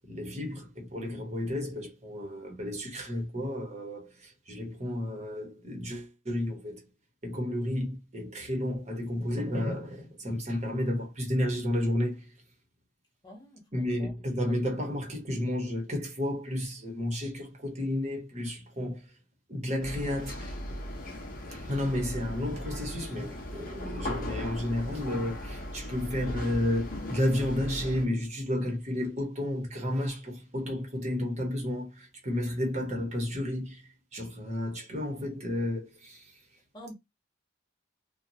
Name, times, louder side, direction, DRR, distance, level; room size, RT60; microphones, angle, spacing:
voice 1, 0.1-6.8 7.2-12.3 13.7-19.1 19.5-20.5 21.5-33.8 34.1-36.3, left 1 dB, 35° right, 1.1 m, -32 dB
voice 2, 13.2-14.1 36.7-36.9, equal, 20° left, 0.9 m, -48 dB
sound 1, 19.8-28.0, left 1 dB, 45° left, 0.8 m, -38 dB
2.8 x 2.3 x 2.7 m
head